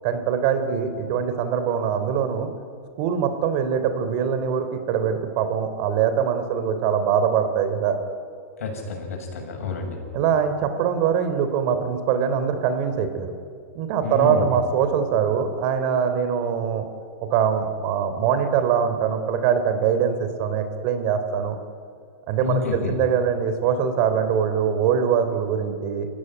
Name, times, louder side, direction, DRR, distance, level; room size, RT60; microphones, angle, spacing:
voice 1, 0.0-2.5 3.0-8.0 10.1-13.3 13.7-16.9 17.3-21.6 22.3-26.1, right 7 dB, 50° right, 9 dB, 3.4 m, -23 dB
voice 2, 8.6-10.0 14.0-14.5 22.4-22.9, left 4 dB, 75° left, 3 dB, 6.6 m, -28 dB
28.0 x 15.5 x 10.0 m, 2.3 s
hypercardioid pair, 115°, 8 cm